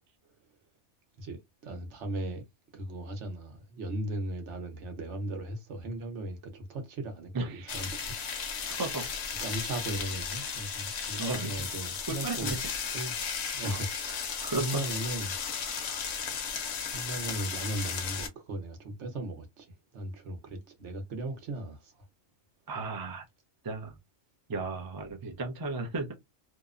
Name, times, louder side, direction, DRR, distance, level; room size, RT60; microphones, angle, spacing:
voice 1, 1.2-2.4 2.7-9.1 9.4-12.5 12.9-13.1 13.5-15.4 16.9-22.1, right 1 dB, 70° right, 1.1 m, -37 dB
voice 2, 7.3-7.8 8.8-9.1 11.2-11.7 12.1-12.6 13.6-13.7 14.4-14.8 22.7-23.3 23.6-24.0 24.5-26.1, right 3 dB, 30° right, 0.4 m, -34 dB
sound 1, 7.7-18.3, left 6 dB, 65° left, 0.8 m, -35 dB
2.8 x 2.1 x 2.4 m
omnidirectional pair, 1.3 m